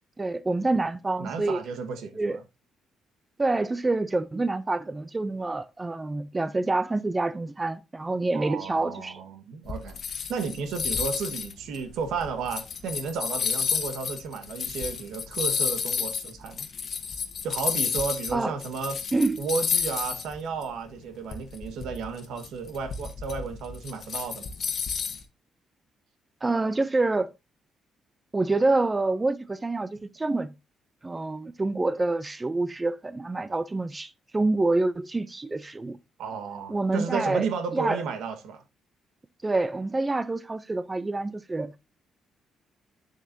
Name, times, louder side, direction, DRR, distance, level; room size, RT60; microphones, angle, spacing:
voice 1, 0.2-1.6 2.2-2.4 3.4-9.2 18.3-18.5 19.1-19.4 26.4-27.3 28.3-30.5 31.0-36.0 36.7-37.5 37.7-38.0 39.4-41.7, right 2 dB, 20° right, 0.4 m, -27 dB
voice 2, 1.2-2.4 8.3-10.0 10.3-16.7 17.4-18.9 19.4-24.5 36.2-38.6, right 5 dB, 85° right, 1.4 m, -33 dB
sound 1, 9.7-18.3 18.6-20.3 20.6-20.7 21.3-25.2, left 6 dB, 55° left, 1.2 m, -31 dB
8.2 x 7.1 x 2.6 m
cardioid pair, 90°, 0 cm